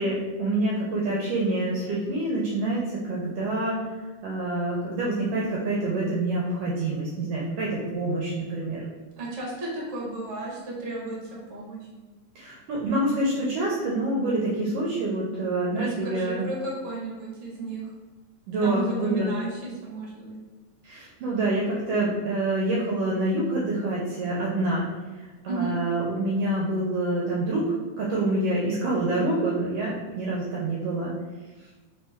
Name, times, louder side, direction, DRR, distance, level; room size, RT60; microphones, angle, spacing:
voice 1, 0.0-3.8 4.2-8.8 12.4-16.4 18.5-19.3 20.8-24.9 25.4-31.1, right 2 dB, 75° right, -4 dB, 1.5 m, -26 dB
voice 2, 9.2-11.2 11.5-11.9 15.7-17.9 18.6-20.4 25.5-25.7, right 2 dB, 50° right, -4 dB, 0.8 m, -33 dB
4.2 x 3.2 x 3.4 m, 1.3 s
omnidirectional pair, 3.3 m